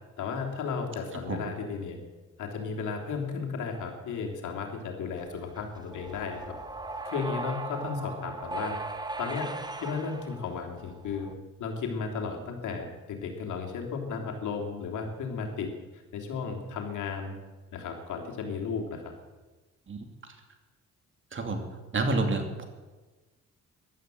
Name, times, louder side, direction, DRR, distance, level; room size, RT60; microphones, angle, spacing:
voice 1, 0.2-2.0 2.4-6.5 7.0-8.8 9.2-9.5 9.8-11.3 11.6-17.4 17.7-19.1, left 5 dB, 75° left, 2 dB, 3.2 m, -34 dB
sound 1, 5.2-11.3, right 2 dB, 15° right, 1.4 m, -38 dB
voice 2, 21.3-21.6 21.9-22.6, right 2 dB, 40° right, 5 dB, 2.7 m, -29 dB
15.0 x 12.0 x 7.8 m, 1.2 s
cardioid pair, 90°, 30 cm